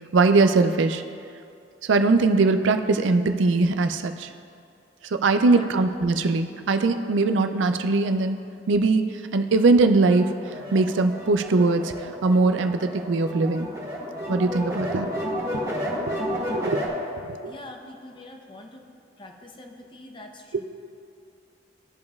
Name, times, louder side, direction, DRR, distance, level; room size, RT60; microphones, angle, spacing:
voice 1, 0.1-1.0 1.8-4.3 5.1-8.4 8.7-9.0 9.3-10.3 10.7-13.7 14.3-15.1 15.5-15.7 16.5-16.8 17.2-17.5 20.5-20.6, right 3 dB, 75° right, 8 dB, 0.4 m, -21 dB
voice 2, 5.4-5.9 17.4-18.8 19.2-20.7, left 1 dB, 25° left, 3 dB, 0.7 m, -44 dB
sound 1, 9.9-16.9, equal, 20° right, 1.8 m, -31 dB
15.0 x 5.3 x 2.3 m, 2.4 s
head